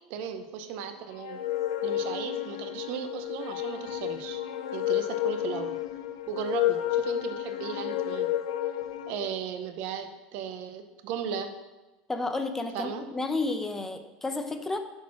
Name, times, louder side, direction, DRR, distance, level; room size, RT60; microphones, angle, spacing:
voice 1, 0.1-1.4 1.8-4.4 4.7-5.7 6.3-8.3 9.1-11.5 12.7-13.0, right 7 dB, 60° right, 8 dB, 0.8 m, -36 dB
sound 1, 1.2-9.3, left 13 dB, 80° left, 0.5 m, -31 dB
voice 2, 12.1-14.8, left 3 dB, 10° left, 7 dB, 0.7 m, -31 dB
6.1 x 4.1 x 6.1 m, 1.1 s
supercardioid pair, 110°, 3 cm